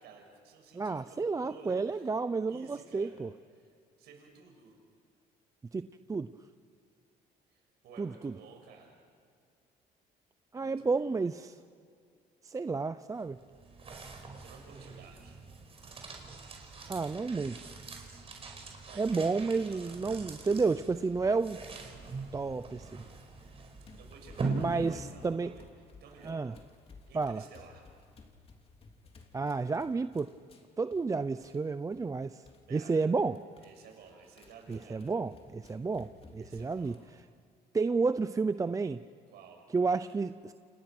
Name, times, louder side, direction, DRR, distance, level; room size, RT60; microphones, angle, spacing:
voice 1, 0.0-2.1 2.5-3.2 3.6-3.7 4.0-4.8 7.5-9.0 10.5-11.2 14.4-15.4 18.8-20.1 24.0-25.6 26.0-26.5 27.1-27.9 32.7-33.2 33.6-35.0 36.3-37.0 39.3-39.6, right 5 dB, 75° right, 2 dB, 6.5 m, -54 dB
voice 2, 0.7-3.3 5.7-6.3 8.0-8.3 10.5-11.5 12.4-13.4 16.9-17.7 19.0-21.6 22.3-23.0 24.5-25.5 26.3-26.5 27.1-27.4 29.3-30.3 30.8-32.4 32.7-33.4 34.7-36.9 37.7-39.0 39.7-40.5, right 4 dB, 20° right, 12 dB, 0.6 m, -31 dB
sound 1, 13.1-25.3, right 3 dB, 35° right, 5.1 m, -42 dB
sound 2, 20.1-20.2 20.5-20.7 21.2-22.2 22.6-23.5 23.8-31.6 31.9-32.1 32.4-32.7 33.0-37.2, left 4 dB, 35° left, 3.2 m, -57 dB
29.5 x 29.0 x 6.2 m, 2.3 s
cardioid pair, 110°, 17 cm